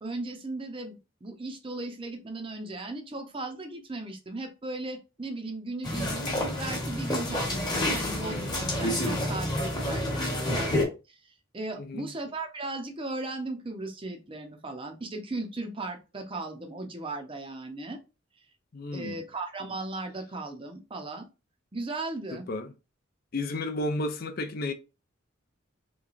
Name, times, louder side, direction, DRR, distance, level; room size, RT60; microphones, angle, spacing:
voice 1, 0.0-18.0 18.9-21.3 21.7-22.5, right 2 dB, 25° right, 0.6 m, -37 dB
sound 1, 5.8-10.8, left 1 dB, 20° left, 1.1 m, -29 dB
voice 2, 11.8-12.1 18.7-19.2 22.3-22.7 23.3-24.7, left 2 dB, 45° left, 0.4 m, -32 dB
3.4 x 3.1 x 2.4 m
head